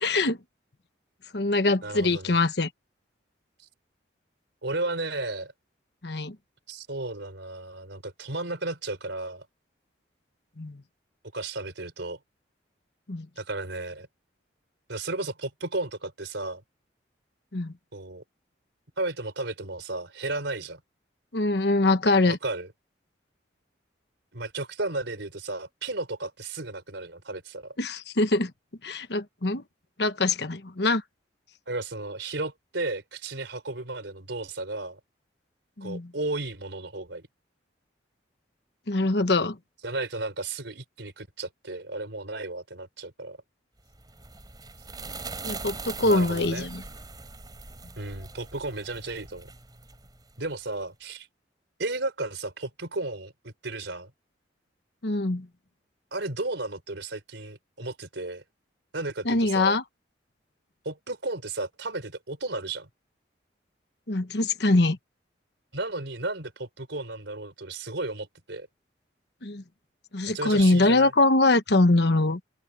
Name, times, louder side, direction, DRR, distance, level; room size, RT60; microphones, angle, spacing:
voice 1, 0.0-0.4 1.3-2.7 6.0-6.3 10.6-10.8 13.1-13.3 17.5-17.7 21.3-22.4 27.8-28.5 28.8-29.6 30.0-31.0 35.8-36.1 38.9-39.6 45.4-46.8 55.0-55.5 59.2-59.8 64.1-65.0 69.4-69.6 70.1-72.4, left 2 dB, 60° left, 1.2 m, -23 dB
voice 2, 1.8-2.4 4.6-5.5 6.7-9.5 11.3-12.2 13.4-14.1 14.9-16.6 17.9-18.2 19.0-20.8 22.2-22.7 24.3-27.8 31.7-35.0 35.8-37.3 39.8-43.4 46.0-46.7 48.0-49.5 50.4-51.3 51.8-54.1 56.1-58.4 58.9-59.8 60.8-62.9 65.7-68.7 70.3-71.1, right 2 dB, 75° right, 4.1 m, -34 dB
sound 1, 43.9-50.5, right 4 dB, 20° right, 3.6 m, -41 dB
open air
head